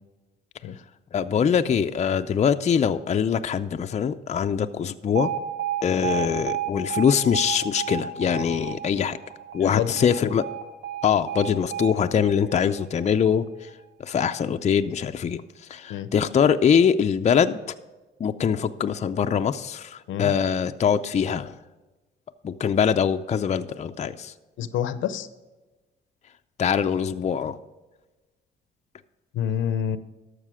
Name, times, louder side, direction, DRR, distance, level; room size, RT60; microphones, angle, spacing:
voice 1, 1.1-5.3 5.8-9.2 9.5-10.4 11.0-13.7 14.0-15.4 15.7-17.6 18.2-21.6 22.4-24.3 26.6-27.6, left 7 dB, 35° left, 8 dB, 0.5 m, -23 dB
Alarm, 5.2-13.2, right 8 dB, 85° right, 1.5 m, -32 dB
voice 2, 9.6-9.9 15.9-16.1 20.1-20.3 24.6-25.3 29.3-30.0, left 9 dB, 80° left, 13 dB, 0.7 m, -27 dB
12.5 x 6.6 x 4.9 m, 1.2 s
cardioid pair, 90°, 20 cm